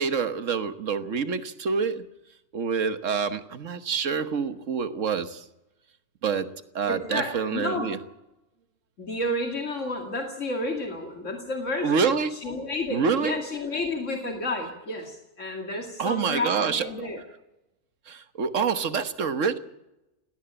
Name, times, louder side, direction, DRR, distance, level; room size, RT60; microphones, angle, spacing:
voice 1, 0.0-2.1 2.5-5.4 6.2-8.0 11.8-12.4 12.9-13.3 16.0-16.8 18.1-19.6, right 6 dB, 85° right, 11 dB, 1.6 m, -27 dB
voice 2, 6.8-7.9 9.0-12.0 12.3-17.2, left 1 dB, 80° left, 3 dB, 2.7 m, -31 dB
19.0 x 18.0 x 8.9 m, 0.93 s
omnidirectional pair, 1.3 m